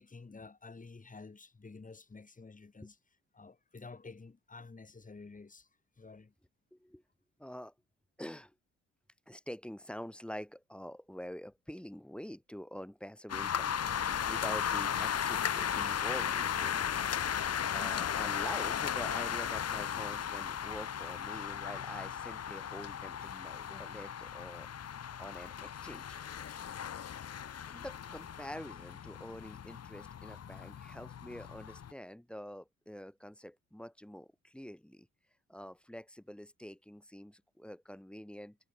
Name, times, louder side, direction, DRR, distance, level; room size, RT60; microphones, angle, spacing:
voice 1, 0.0-3.0 3.3-5.7 6.0-6.3, left 4 dB, 25° left, 7.6 m, -51 dB
voice 2, 6.7-7.0 7.4-7.7 8.2-8.5 9.3-16.9 17.7-24.7 25.2-26.2 27.7-35.1 35.5-38.6, equal, 5° left, 3.7 m, -46 dB
sound 1, 13.3-31.9, left 8 dB, 55° left, 3.8 m, -36 dB
cardioid pair, 90°, 30 cm